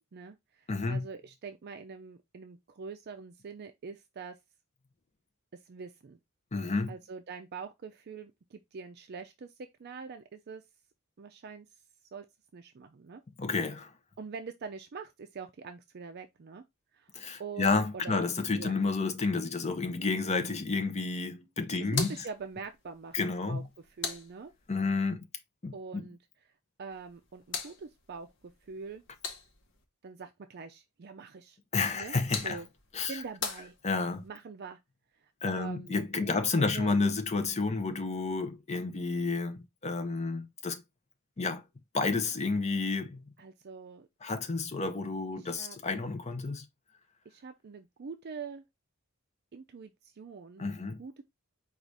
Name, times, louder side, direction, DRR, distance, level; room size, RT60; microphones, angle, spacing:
voice 1, 0.1-4.4 5.5-6.2 6.9-9.5 9.8-10.6 11.2-11.8 12.1-12.3 12.5-13.2 14.2-16.6 16.9-18.3 18.5-18.7 21.9-23.6 24.0-24.5 25.7-26.2 26.8-28.3 28.6-29.0 30.0-31.6 31.9-32.2 32.4-32.7 33.1-33.7 34.2-34.8 35.2-36.5 36.7-36.9 43.4-44.1 45.3-45.8 47.3-48.6 49.5-51.2, right 5 dB, 50° right, 0.4 m, -44 dB
voice 2, 0.7-1.1 6.5-6.9 13.4-13.9 17.1-22.1 23.1-23.7 24.7-25.3 25.6-26.1 31.7-32.6 32.9-33.2 33.8-34.2 35.4-40.8 41.4-41.6 41.9-43.2 44.2-46.6 50.6-51.0, left 3 dB, 30° left, 0.6 m, -30 dB
sound 1, 21.8-24.9 26.9-29.8 31.8-34.3, left 5 dB, 60° left, 0.9 m, -42 dB
4.7 x 2.4 x 3.9 m
head